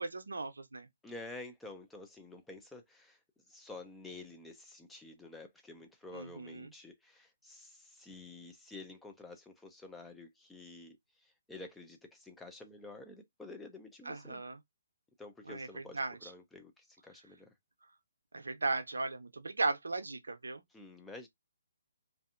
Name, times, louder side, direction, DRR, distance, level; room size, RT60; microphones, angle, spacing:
voice 1, 0.0-0.9 6.1-6.7 14.0-14.6 15.5-16.3 18.3-20.6, right 3 dB, 85° right, 0.6 m, -37 dB
voice 2, 1.0-3.2 3.5-11.0 11.5-14.4 15.2-17.5 20.7-21.3, left 2 dB, 5° left, 0.4 m, -50 dB
2.6 x 2.4 x 2.4 m
hypercardioid pair, 145°, 0 cm